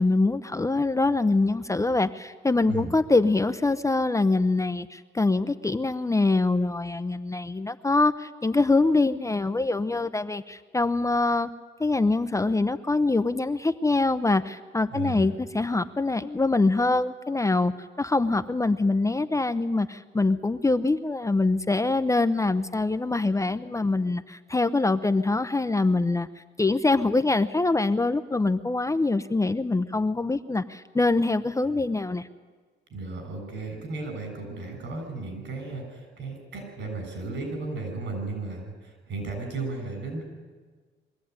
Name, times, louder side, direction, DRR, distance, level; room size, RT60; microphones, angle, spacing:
voice 1, 0.0-11.5 11.8-17.7 18.0-26.3 26.6-32.3, left 3 dB, 15° left, 10 dB, 0.7 m, -24 dB
voice 2, 14.9-15.3 32.9-40.3, right 3 dB, 70° right, 5 dB, 7.1 m, -35 dB
23.0 x 14.0 x 9.6 m, 1.4 s
cardioid pair, 90°, 20 cm